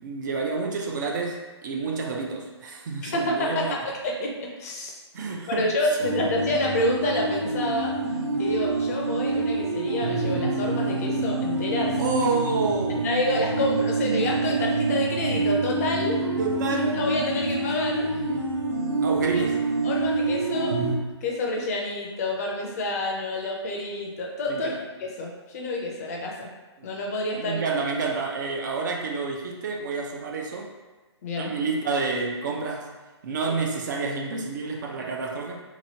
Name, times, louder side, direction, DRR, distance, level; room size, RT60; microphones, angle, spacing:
voice 1, 0.0-3.8 5.1-6.3 12.0-13.1 13.6-13.7 16.4-17.0 17.4-17.5 19.0-19.6 24.5-24.8 26.8-26.9 27.4-30.7 31.4-32.9 33.2-35.6, right 4 dB, 40° right, 0 dB, 0.4 m, -29 dB
voice 2, 3.0-5.0 5.6-7.9 8.4-12.0 13.0-16.2 16.7-18.0 19.3-19.4 19.8-20.8 21.2-26.5 26.8-27.6 31.2-31.5 33.5-33.6, left 1 dB, 35° left, -1 dB, 0.5 m, -28 dB
sound 1, 6.0-20.9, right 2 dB, 75° right, 0.8 m, -26 dB
2.9 x 2.5 x 2.7 m, 1.2 s
figure-of-eight pair, 140°, 15 cm